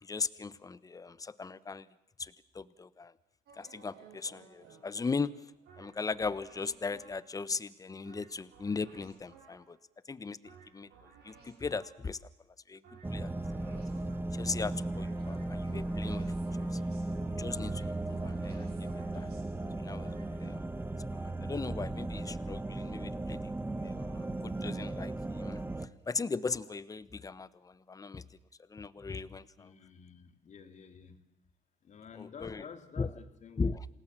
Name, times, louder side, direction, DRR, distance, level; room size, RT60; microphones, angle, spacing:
voice 1, 0.0-1.9 2.2-3.1 3.6-5.3 5.8-9.8 10.1-10.9 11.2-12.2 12.7-12.8 13.1-13.3 13.6-13.8 14.3-16.3 16.7-16.8 17.4-19.3 19.8-20.1 20.4-20.6 21.1-23.4 23.8-25.6 26.1-28.2 28.7-29.7 32.1-32.6 33.0-33.1 33.6-33.9, left 4 dB, 20° left, 17 dB, 1.0 m, -38 dB
sound 1, 3.5-7.4 8.0-9.8 10.4-12.2 12.8-20.6, right 5 dB, 75° right, 7.7 m, -56 dB
sound 2, 13.0-25.9, right 2 dB, 10° right, 1.2 m, -36 dB
voice 2, 29.6-31.2 31.8-33.8, left 6 dB, 45° left, 8 dB, 2.8 m, -50 dB
27.5 x 19.0 x 7.5 m, 0.83 s
cardioid pair, 110°, 17 cm